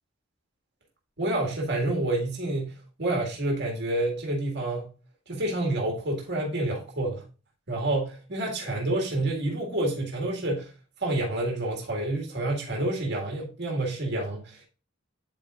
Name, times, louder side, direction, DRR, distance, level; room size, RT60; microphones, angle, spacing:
voice 1, 1.2-4.9 5.3-7.2 7.7-10.7 11.0-14.6, right 1 dB, 55° right, 2.0 m, -28 dB
10.5 x 4.5 x 2.5 m
head